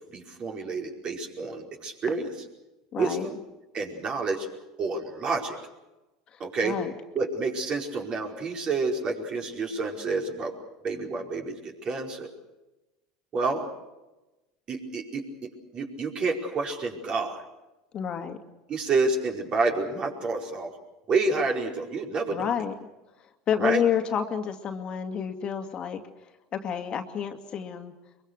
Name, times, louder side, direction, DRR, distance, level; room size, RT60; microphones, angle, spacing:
voice 1, 0.1-2.3 3.0-3.4 3.7-4.5 4.8-5.6 6.4-6.8 7.1-10.5 10.8-12.3 13.3-13.7 14.7-17.4 18.7-20.8 21.1-22.5 23.6-23.8, right 3 dB, 40° right, 1 dB, 4.9 m, -29 dB
voice 2, 2.9-3.3 6.3-6.9 17.9-18.4 22.3-22.7 23.5-26.0 26.5-27.9, left 8 dB, 40° left, 5 dB, 2.3 m, -29 dB
23.0 x 23.0 x 6.7 m, 1.0 s
supercardioid pair, 95°, 2 cm